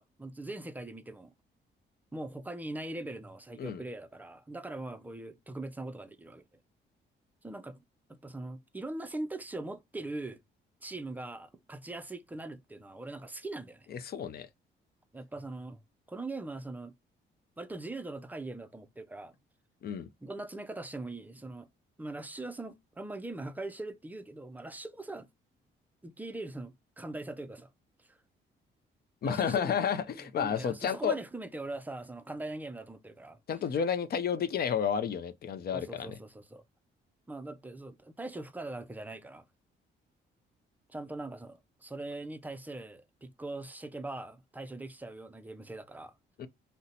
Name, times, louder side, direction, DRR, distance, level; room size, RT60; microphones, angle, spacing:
voice 1, 0.0-1.3 2.1-6.4 7.4-7.8 8.1-10.4 10.8-13.9 15.1-15.8 16.1-16.9 17.6-19.3 20.2-21.7 22.0-25.3 26.0-27.7 28.0-28.2 29.2-29.8 30.2-33.4 35.7-36.6 37.3-39.5 40.9-46.1, right 2 dB, 10° right, 0.4 m, -41 dB
voice 2, 13.9-14.5 19.8-20.1 29.2-31.2 33.5-36.2 46.4-46.5, left 7 dB, 50° left, 0.5 m, -31 dB
2.7 x 2.1 x 3.9 m
cardioid pair, 90°, 20 cm